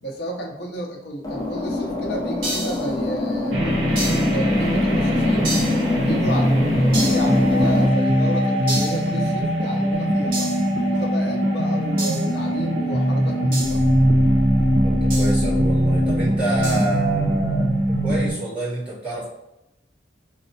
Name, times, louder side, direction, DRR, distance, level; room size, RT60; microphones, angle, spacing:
voice 1, 0.0-5.5 5.9-10.5 10.9-13.8, right 1 dB, 60° left, 1 dB, 0.6 m, -32 dB
sound 1, 1.2-7.9, left 2 dB, 20° left, 0.5 m, -24 dB
sound 2, 2.4-2.9 3.9-4.4 5.4-5.8 6.9-7.3 8.7-9.1 10.3-10.7 12.0-12.3 13.5-13.8 15.1-15.4 16.6-16.9, right 2 dB, 50° right, 1.2 m, -29 dB
sound 3, 3.5-18.3, equal, 85° right, 0.7 m, -21 dB
voice 2, 14.8-19.3, right 2 dB, 10° right, -9 dB, 0.9 m, -28 dB
4.1 x 2.0 x 2.7 m, 0.85 s
head